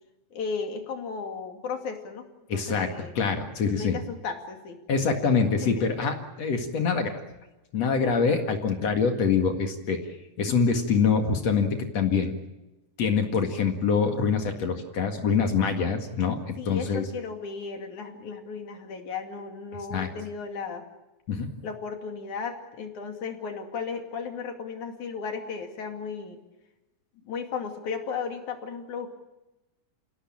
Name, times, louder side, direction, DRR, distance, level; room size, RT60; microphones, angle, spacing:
voice 1, 0.3-3.1 3.6-4.8 5.6-5.9 8.2-8.4 16.6-20.9 21.6-26.4 27.3-29.1, left 5 dB, 75° left, 4 dB, 3.9 m, -35 dB
voice 2, 2.5-3.9 4.9-7.2 7.7-10.1 10.4-12.4 13.0-17.1 19.9-20.1 21.3-21.5, left 5 dB, 60° left, 5 dB, 3.0 m, -25 dB
29.0 x 17.0 x 8.9 m, 1.0 s
omnidirectional pair, 3.5 m